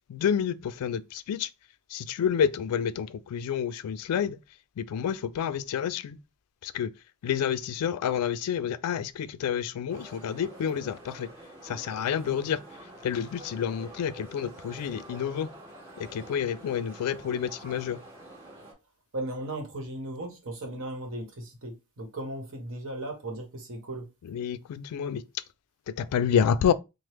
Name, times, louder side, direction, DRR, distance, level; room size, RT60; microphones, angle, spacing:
voice 1, 0.1-1.5 1.9-4.4 4.8-6.2 6.6-6.9 7.2-11.3 11.7-12.6 13.0-15.5 16.1-18.0 24.3-25.2 26.0-26.7, left 8 dB, 85° left, 0.3 m, -29 dB
sound 1, 9.9-18.7, right 1 dB, 25° right, 1.3 m, -47 dB
voice 2, 19.1-24.0, right 1 dB, 60° right, 1.1 m, -37 dB
3.3 x 2.0 x 3.0 m
head